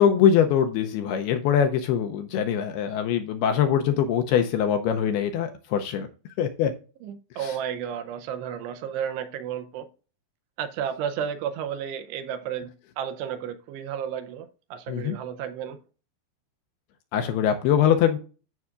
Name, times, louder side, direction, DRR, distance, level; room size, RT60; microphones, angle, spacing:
voice 1, 0.0-6.1 6.4-6.7 7.4-7.6 14.9-15.2 17.1-18.2, left 8 dB, 80° left, 2.4 m, -23 dB
voice 2, 7.0-9.9 10.6-12.7 13.0-15.8, right 8 dB, 80° right, 2.8 m, -32 dB
14.0 x 5.7 x 2.5 m
omnidirectional pair, 5.1 m